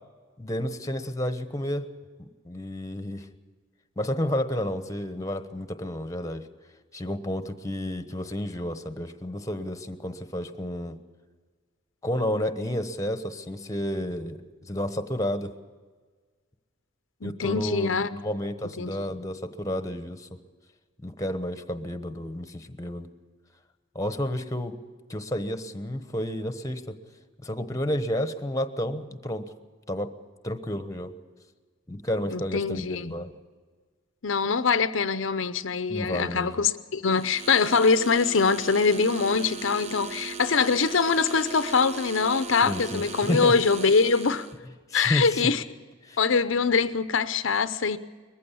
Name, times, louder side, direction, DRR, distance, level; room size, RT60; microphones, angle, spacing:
voice 1, 0.4-1.9 2.2-3.3 4.0-6.5 6.9-11.0 12.0-15.5 17.2-20.4 21.0-23.1 23.9-24.7 25.1-26.9 27.4-29.4 29.9-30.1 30.4-31.1 31.9-33.3 35.9-36.6 42.6-43.5 44.9-45.5 46.0-46.2, left 1 dB, 15° left, 1.1 m, -31 dB
voice 2, 17.2-18.1 18.8-18.9 32.3-33.1 34.2-44.5 44.9-45.6 46.2-48.0, left 5 dB, 75° left, 0.7 m, -23 dB
sound 1, 37.1-44.6, right 6 dB, 35° right, 0.8 m, -39 dB
21.0 x 15.0 x 8.4 m
head